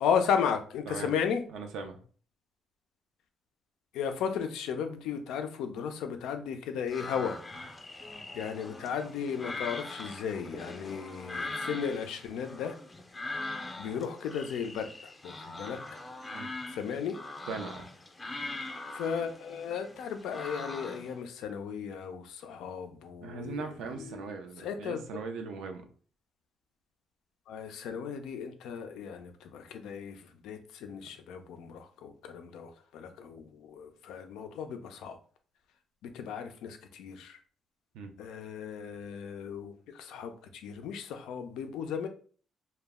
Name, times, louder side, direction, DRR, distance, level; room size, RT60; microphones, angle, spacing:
voice 1, 0.0-1.4 3.9-7.4 8.3-12.8 13.8-16.0 16.7-17.2 18.9-24.3 24.6-25.0 27.5-35.2 36.0-37.4 38.2-42.1, left 7 dB, 90° left, 7 dB, 0.3 m, -35 dB
voice 2, 1.5-2.0 16.3-16.5 17.5-17.9 23.2-25.9 37.9-38.1, right 4 dB, 90° right, 5 dB, 0.4 m, -39 dB
sound 1, 6.9-21.2, left 2 dB, 25° left, 0.5 m, -42 dB
2.2 x 2.0 x 3.4 m, 0.44 s
cardioid pair, 90°, 0 cm